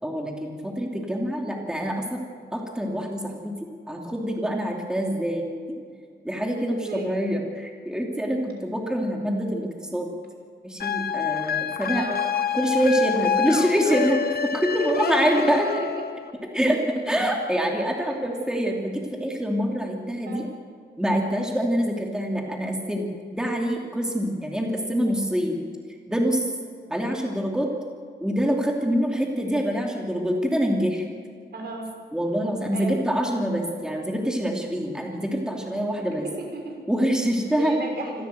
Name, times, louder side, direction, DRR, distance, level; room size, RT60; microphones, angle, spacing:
voice 1, 0.0-2.2 2.5-3.5 3.9-5.8 6.2-10.1 10.6-12.0 12.5-15.8 16.5-20.5 21.0-25.6 26.1-26.4 26.9-27.7 28.2-31.0 32.1-36.2 36.9-37.9, equal, 5° right, 0 dB, 2.8 m, -25 dB
voice 2, 6.7-7.2 11.9-12.3 14.9-15.7 18.1-18.2 20.2-20.5 31.5-31.9 32.7-33.0 36.0-36.8 37.6-38.3, right 3 dB, 65° right, 1 dB, 6.2 m, -34 dB
sound 1, 10.8-16.3, left 8 dB, 60° left, 1.1 m, -27 dB
26.0 x 16.0 x 8.0 m, 2.1 s
wide cardioid pair, 135°, 18 cm